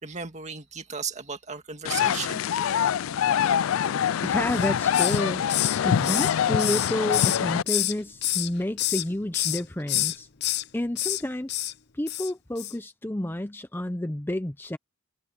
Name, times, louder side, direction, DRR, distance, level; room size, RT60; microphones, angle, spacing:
voice 1, 0.0-2.5, right 6 dB, 35° right, 2.3 m, -35 dB
sound 1, 1.9-7.6, left 8 dB, 75° left, 0.4 m, -25 dB
voice 2, 4.2-10.3 10.7-11.6 11.9-14.8, left 1 dB, 10° left, 0.6 m, -30 dB
Hiss, 4.5-5.2 5.5-8.0 8.2-9.1 9.3-9.6 9.9-10.6 11.0-11.2 11.5-11.7 12.1-12.3 12.6-12.7, left 15 dB, 55° left, 0.7 m, -27 dB
head